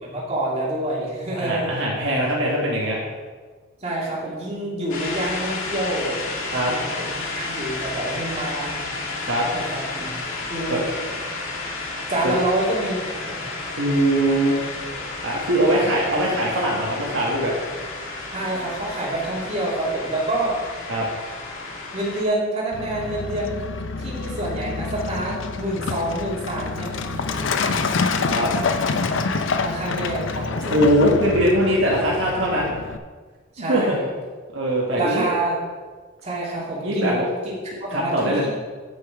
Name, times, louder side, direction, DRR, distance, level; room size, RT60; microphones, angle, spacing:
voice 1, 0.0-1.8 3.8-6.3 6.7-9.1 9.5-10.2 10.5-10.8 12.1-13.5 15.7-16.3 18.3-20.6 21.9-23.6 24.0-27.8 29.6-31.3 33.5-34.1 35.0-35.6 36.2-37.3 37.8-38.5, right 1 dB, 30° right, -6 dB, 2.6 m, -27 dB
voice 2, 1.3-3.0 6.5-6.7 9.3-9.5 10.7-10.8 12.2-12.3 13.8-14.6 15.2-17.5 20.9-21.1 28.3-28.5 30.6-32.8 33.7-34.0 34.5-35.3 36.8-37.3 37.7-38.5, right 1 dB, 65° right, -4 dB, 1.6 m, -21 dB
sound 1, 4.9-22.2, left 3 dB, 85° left, 1.9 m, -32 dB
Truck, 22.7-33.0, left 4 dB, 65° left, 0.5 m, -27 dB
8.9 x 6.7 x 4.9 m, 1.4 s
head